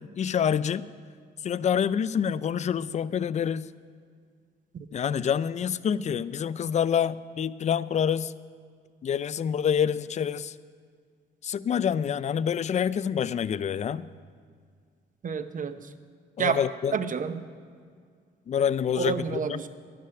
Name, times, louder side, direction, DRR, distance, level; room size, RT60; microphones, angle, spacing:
voice 1, 0.2-0.8 1.4-3.7 4.9-8.3 9.0-10.5 11.4-14.1 16.4-16.9 18.5-19.2 19.5-19.7, left 8 dB, 35° left, 17 dB, 0.4 m, -27 dB
voice 2, 15.2-15.9 16.4-16.6 16.9-17.4 18.9-19.7, right 6 dB, 40° right, 11 dB, 0.7 m, -29 dB
11.5 x 9.6 x 5.7 m, 2.1 s
cardioid pair, 90°, 20 cm